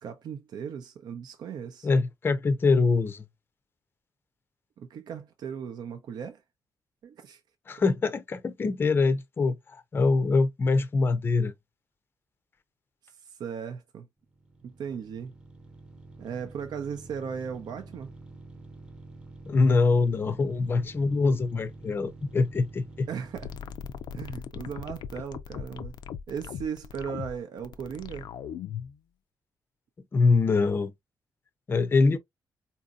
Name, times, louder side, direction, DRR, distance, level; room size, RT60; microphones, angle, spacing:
voice 1, 0.0-1.9 4.8-6.4 7.0-7.4 13.0-14.1 14.6-15.3 16.2-18.1 20.8-20.9 23.1-23.5 24.1-25.9 26.3-28.3, right 7 dB, 70° right, 0.5 m, -37 dB
voice 2, 1.8-3.2 7.7-11.5 19.5-23.1 30.1-30.9 31.7-32.2, left 3 dB, 30° left, 0.5 m, -24 dB
sound 1, 14.2-24.1, right 2 dB, 10° right, 0.7 m, -48 dB
sound 2, 23.4-29.0, left 8 dB, 85° left, 0.4 m, -39 dB
4.1 x 2.7 x 2.3 m
cardioid pair, 130°, 7 cm